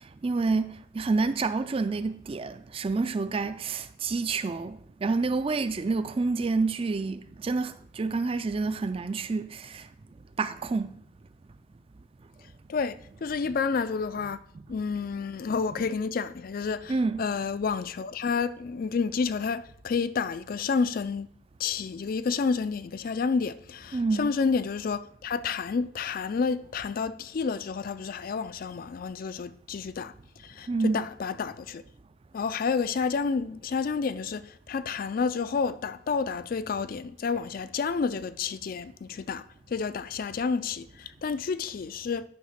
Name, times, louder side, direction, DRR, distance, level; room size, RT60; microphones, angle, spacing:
voice 1, 0.2-9.8 10.4-10.9 16.9-17.2 23.9-24.3 30.7-31.1, right 3 dB, 30° right, 0.4 m, -28 dB
voice 2, 12.7-14.4 14.7-21.3 21.6-30.1 30.4-31.8 32.3-42.2, left 5 dB, 50° left, 0.4 m, -30 dB
10.0 x 3.5 x 5.8 m
head